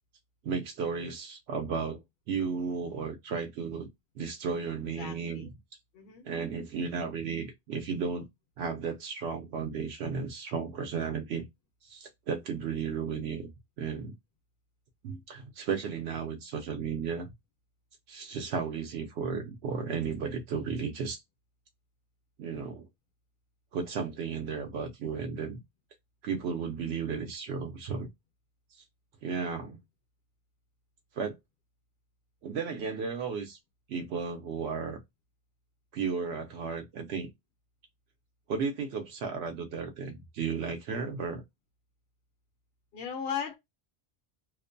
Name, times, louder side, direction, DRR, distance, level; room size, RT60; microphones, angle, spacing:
voice 1, 0.4-2.0 2.3-3.9 4.2-5.5 6.2-8.3 8.6-11.4 11.8-13.5 13.8-14.1 15.0-17.3 18.1-21.2 22.4-22.8 23.7-25.6 26.2-28.1 28.7-28.8 29.2-29.8 31.2-31.4 32.4-33.6 33.9-35.0 35.9-37.3 38.5-41.4, right 5 dB, 80° right, 0.9 m, -34 dB
voice 2, 4.8-5.5 5.9-6.2 42.9-43.6, left 7 dB, 65° left, 0.8 m, -37 dB
2.5 x 2.1 x 2.5 m
omnidirectional pair, 1.1 m